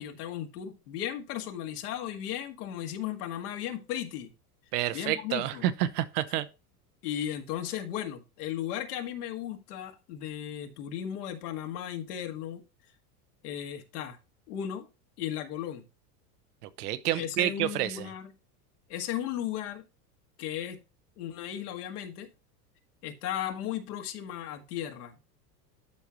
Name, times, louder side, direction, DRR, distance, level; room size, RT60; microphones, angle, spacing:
voice 1, 0.0-4.3 4.9-5.6 7.0-12.6 13.4-14.2 14.5-14.9 15.2-15.8 17.2-18.3 18.9-19.8 20.4-20.8 21.2-22.3 23.0-25.2, left 10 dB, 75° left, 1.9 m, -36 dB
voice 2, 4.7-6.5 16.6-18.1, right 13 dB, 75° right, 1.0 m, -29 dB
12.5 x 4.9 x 2.9 m
hypercardioid pair, 100°, 47 cm